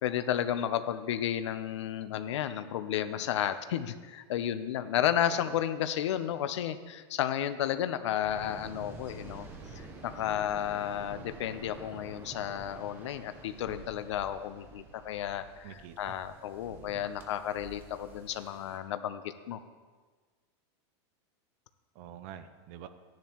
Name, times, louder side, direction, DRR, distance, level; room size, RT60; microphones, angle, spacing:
voice 1, 0.0-9.5 9.7-19.6, left 10 dB, 75° left, 11 dB, 0.6 m, -32 dB
Waves surf, 8.2-18.8, right 2 dB, 15° right, 0.9 m, -49 dB
voice 2, 15.6-16.2 16.7-16.9 22.0-22.9, right 10 dB, 30° right, 11 dB, 0.5 m, -47 dB
14.5 x 10.5 x 3.0 m, 1.4 s
supercardioid pair, 175°, 15 cm